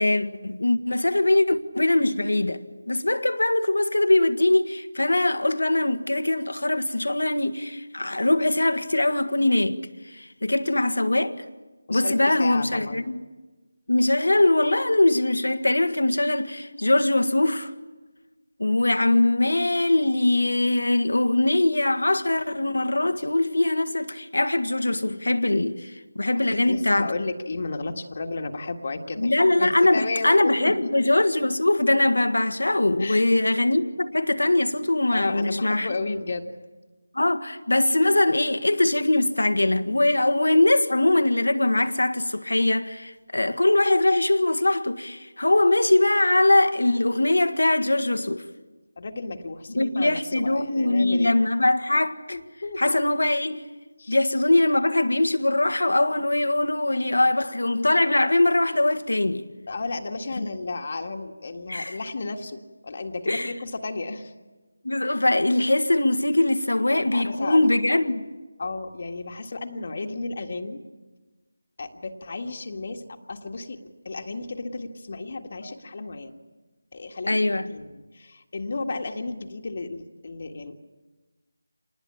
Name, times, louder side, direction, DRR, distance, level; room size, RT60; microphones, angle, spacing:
voice 1, 0.0-9.8 10.1-11.4 11.9-13.1 13.9-17.7 18.6-27.1 29.2-35.9 37.1-48.5 49.7-52.4 52.8-53.7 54.1-59.4 60.4-60.5 61.7-62.0 63.3-63.5 64.8-68.2 75.6-75.7 77.3-77.7, left 2 dB, 85° left, 1.7 m, -22 dB
voice 2, 11.9-13.0 26.7-29.3 29.6-30.9 33.0-33.2 35.1-36.5 49.0-51.3 52.3-52.8 54.0-54.2 59.7-64.3 67.1-67.7 68.6-70.8 71.8-76.4 76.9-77.4 77.7-80.8, left 3 dB, 45° left, 1.8 m, -33 dB
27.0 x 20.5 x 8.7 m
figure-of-eight pair, 170°, 0 cm